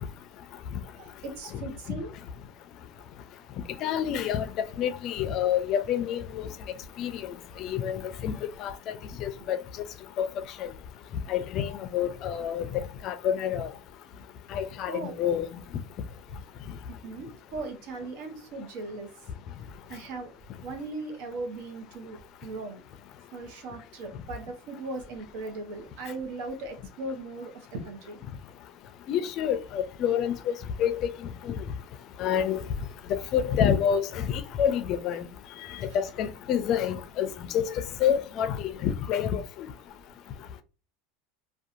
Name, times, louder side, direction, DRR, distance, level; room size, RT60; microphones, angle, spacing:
voice 1, 1.0-2.1 9.3-9.5 14.9-15.2 16.9-19.1 19.9-20.3 20.6-22.8 23.3-28.2 35.8-36.0, right 2 dB, 65° right, 0.8 m, -38 dB
voice 2, 3.8-4.5 4.8-6.5 7.0-7.2 7.6-8.3 8.6-9.6 10.2-10.4 11.3-12.7 13.0-13.7 14.5-15.5 29.1-30.5 30.8-31.1 31.5-31.6 32.2-32.6 33.3-34.3 34.6-35.3 35.9-37.3 37.5-37.7 38.0-39.4, left 9 dB, 45° left, 0.4 m, -27 dB
2.7 x 2.2 x 2.5 m
supercardioid pair, 125°, 0 cm